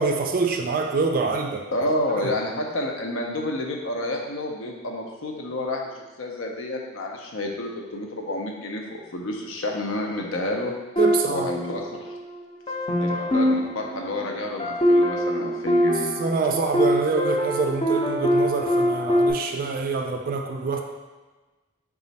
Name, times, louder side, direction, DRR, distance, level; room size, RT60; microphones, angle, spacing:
voice 1, 0.0-1.7 2.2-2.3 11.0-11.5 16.2-20.8, right 4 dB, 45° right, 3 dB, 0.3 m, -25 dB
voice 2, 1.7-5.9 6.2-10.7 11.3-12.1 13.0-16.1, left 1 dB, 75° left, 1 dB, 0.6 m, -29 dB
sound 1, 11.0-12.2 12.7-19.3, equal, 30° left, 0.6 m, -23 dB
4.1 x 2.4 x 4.0 m, 1.2 s
head